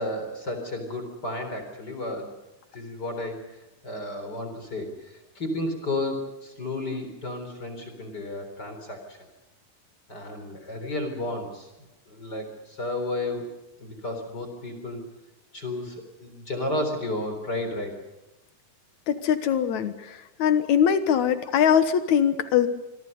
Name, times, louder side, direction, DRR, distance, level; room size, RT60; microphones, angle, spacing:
voice 1, 0.0-2.4 2.7-9.2 10.1-11.7 12.1-13.5 13.8-15.0 15.5-17.9, left 1 dB, 35° left, 6 dB, 4.3 m, -32 dB
voice 2, 19.1-22.7, left 8 dB, 75° left, 10 dB, 2.6 m, -22 dB
26.5 x 24.5 x 5.4 m, 0.97 s
omnidirectional pair, 3.4 m